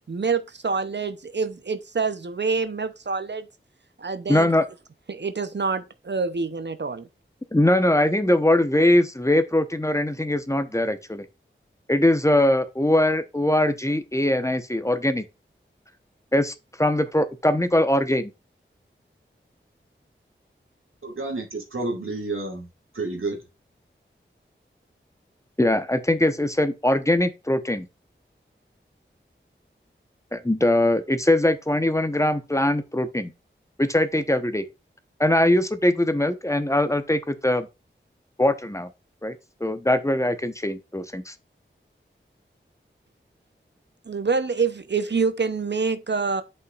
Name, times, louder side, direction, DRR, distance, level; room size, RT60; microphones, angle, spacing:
voice 1, 0.1-3.5 4.0-4.5 5.1-7.1 44.1-46.4, right 4 dB, 60° right, 0.7 m, -26 dB
voice 2, 4.3-4.6 7.5-11.2 11.9-15.2 16.3-18.3 25.6-27.9 30.3-33.3 33.8-34.6 35.2-37.7 38.4-38.9 39.2-41.3, left 1 dB, 15° left, 1.0 m, -21 dB
voice 3, 21.0-22.7 22.9-23.4, right 2 dB, 85° right, 2.2 m, -30 dB
8.1 x 5.6 x 2.4 m
wide cardioid pair, 40°, 21 cm